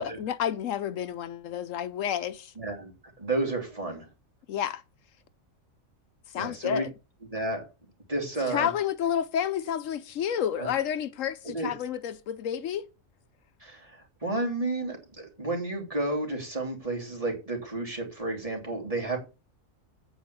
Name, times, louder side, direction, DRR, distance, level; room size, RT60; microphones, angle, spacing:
voice 1, 0.0-2.5 4.5-4.8 6.3-6.9 8.5-12.9, left 9 dB, 80° left, 1.0 m, -30 dB
voice 2, 2.6-2.9 3.2-4.1 6.4-6.8 7.3-7.6 8.1-8.7 10.6-10.7 11.4-11.7 13.6-19.2, right 2 dB, 25° right, 3.2 m, -31 dB
8.8 x 5.0 x 6.8 m
omnidirectional pair, 1.4 m